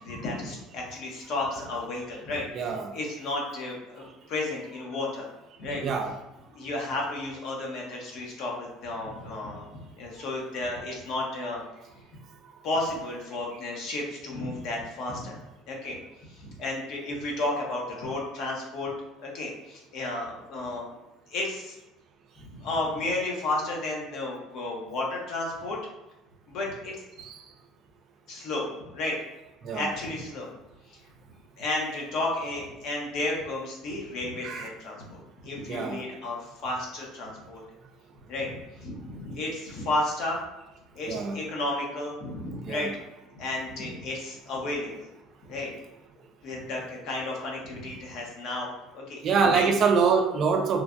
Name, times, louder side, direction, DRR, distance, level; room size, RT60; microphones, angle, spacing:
voice 1, 0.0-5.3 5.6-5.9 6.5-11.6 12.6-15.4 15.7-16.0 16.3-18.9 19.2-20.9 21.3-21.8 22.4-25.8 26.5-27.1 28.3-28.7 28.9-29.2 29.7-30.5 30.9-31.0 31.6-37.6 38.3-40.4 40.9-42.9 43.3-45.1 45.4-45.7 46.4-48.7 48.9-49.7, left 2 dB, 60° left, -2 dB, 0.9 m, -33 dB
voice 2, 2.5-2.9 5.8-6.1 27.2-27.3 29.6-29.9 34.4-34.7 35.7-36.0 41.1-41.4 42.7-42.9 49.2-50.8, right 5 dB, 45° right, 5 dB, 0.4 m, -25 dB
3.2 x 2.2 x 2.5 m, 0.99 s
cardioid pair, 115°, 0 cm